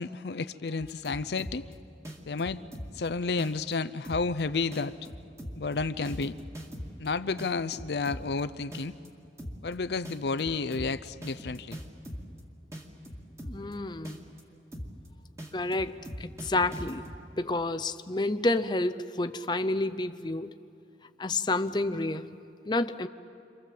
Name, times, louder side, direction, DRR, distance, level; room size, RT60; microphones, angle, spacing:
voice 1, 0.0-1.6 2.3-2.6 2.9-4.9 5.5-6.4 7.0-8.9 9.6-11.8, left 4 dB, 70° left, 0.6 m, -31 dB
sound 1, 0.8-1.7 2.0-3.1 3.4-3.7 4.0-4.4 4.7-7.1 7.4-8.4 8.7-9.1 9.4-9.7 10.0-12.4 12.7-13.7 14.0-14.4 14.7-15.1 15.4-17.2, equal, 15° right, 2.2 m, -40 dB
voice 2, 13.4-14.2 15.5-15.9 16.2-17.0 17.4-20.5 21.2-22.4 22.7-23.1, left 2 dB, 25° left, 0.6 m, -29 dB
29.0 x 26.5 x 7.6 m
head